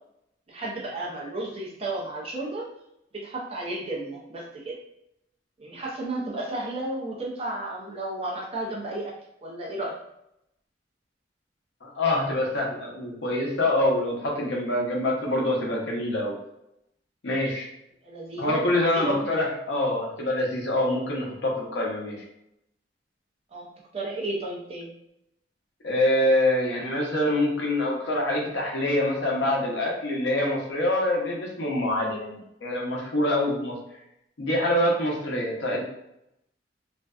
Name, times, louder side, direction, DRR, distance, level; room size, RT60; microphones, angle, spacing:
voice 1, 0.5-2.7 3.1-4.8 5.6-9.1 9.4-9.9 18.0-19.3 23.5-24.9, right 2 dB, 35° right, -3 dB, 0.6 m, -33 dB
voice 2, 11.8-16.3 17.2-17.7 18.4-22.2 25.8-33.8 34.4-35.8, left 1 dB, 80° left, -2 dB, 0.7 m, -25 dB
2.5 x 2.2 x 2.4 m, 0.82 s
head